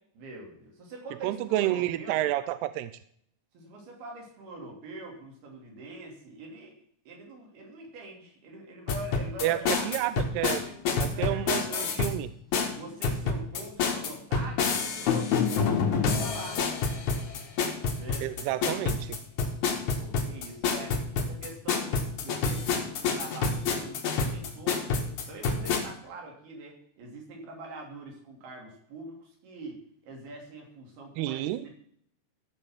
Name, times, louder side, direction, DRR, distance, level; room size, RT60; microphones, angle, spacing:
voice 1, 0.1-2.3 3.5-6.8 7.1-9.9 10.5-10.8 11.0-12.1 12.7-16.7 18.0-18.3 20.0-31.7, right 2 dB, 60° right, 0 dB, 4.7 m, -44 dB
voice 2, 1.2-2.9 9.4-9.6 9.8-10.6 11.0-11.6 12.0-12.3 18.2-19.2 31.2-31.7, right 14 dB, 80° right, 13 dB, 2.4 m, -29 dB
sound 1, 8.9-12.2 12.5-25.8, left 5 dB, 55° left, 2.3 m, -28 dB
14.0 x 5.6 x 7.2 m, 0.66 s
omnidirectional pair, 5.1 m